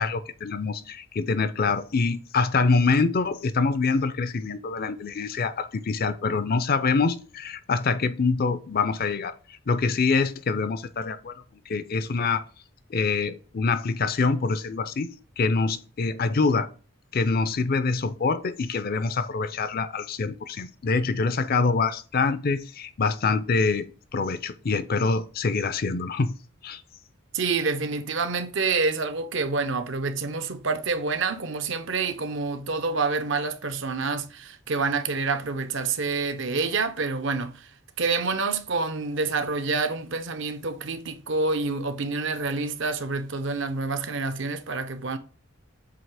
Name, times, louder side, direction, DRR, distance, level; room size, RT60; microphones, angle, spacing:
voice 1, 0.0-9.3 9.7-11.3 11.7-12.4 12.9-15.1 15.4-16.7 17.1-23.9 24.1-26.3 26.6-26.8, left 4 dB, 45° left, 0.5 m, -25 dB
voice 2, 27.3-37.7 38.0-45.2, right 4 dB, 60° right, 0.7 m, -27 dB
7.6 x 2.9 x 4.8 m
head